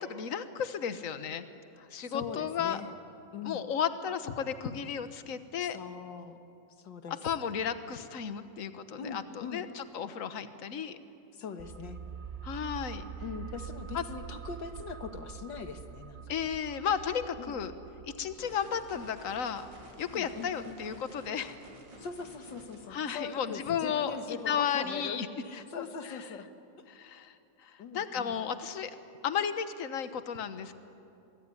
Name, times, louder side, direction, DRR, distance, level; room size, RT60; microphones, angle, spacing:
voice 1, 0.0-1.4 1.9-2.8 3.4-5.8 7.2-11.0 12.4-13.0 13.9-14.0 16.3-17.7 18.0-19.7 20.0-21.5 22.9-24.2 24.5-25.3 25.5-26.2 26.9-27.3 27.6-28.9 29.2-30.7, left 7 dB, 50° left, 11 dB, 1.5 m, -34 dB
voice 2, 2.0-2.9 3.3-3.6 5.6-6.4 6.8-7.2 9.0-9.6 11.3-12.0 13.2-16.5 17.4-17.6 20.1-20.8 22.0-26.5 27.8-28.4, left 6 dB, 80° left, 7 dB, 2.2 m, -41 dB
sound 1, 11.6-23.0 23.2-23.3, right 8 dB, 75° right, 0.4 m, -46 dB
sound 2, 18.4-22.8, right 1 dB, 90° right, 4.3 m, -52 dB
25.0 x 22.5 x 9.9 m, 2.7 s
omnidirectional pair, 1.9 m